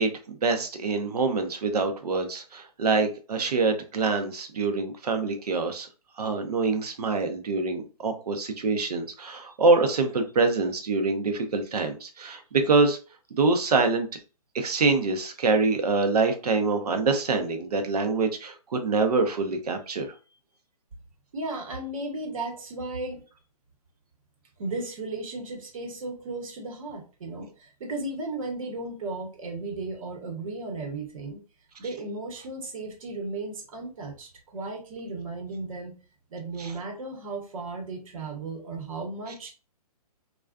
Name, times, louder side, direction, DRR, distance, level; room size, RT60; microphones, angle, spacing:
voice 1, 0.0-5.9 6.2-13.0 13.3-14.1 14.5-20.1 36.6-36.7, right 3 dB, 80° right, 6 dB, 0.7 m, -25 dB
voice 2, 21.3-23.2 24.6-31.4 31.8-36.0 36.3-39.5, right 2 dB, 60° right, 2 dB, 1.0 m, -35 dB
2.4 x 2.3 x 2.2 m, 0.34 s
hypercardioid pair, 150°, 20 cm